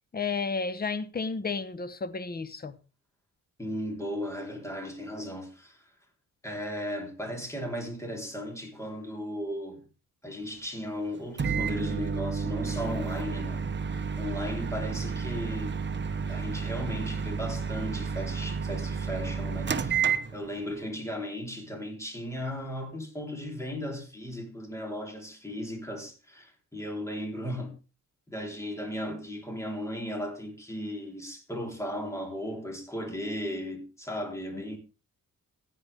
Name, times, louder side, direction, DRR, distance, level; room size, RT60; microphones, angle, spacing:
voice 1, 0.1-2.8 34.5-34.6, left 4 dB, 25° left, 1.0 m, -32 dB
voice 2, 3.6-5.9 6.4-9.9 10.2-15.8 16.3-27.8 28.3-34.8, equal, 10° left, 3.7 m, -36 dB
Microwave oven, 11.4-20.8, right 6 dB, 35° right, 0.9 m, -31 dB
15.5 x 9.6 x 3.5 m
cardioid pair, 115°, 33 cm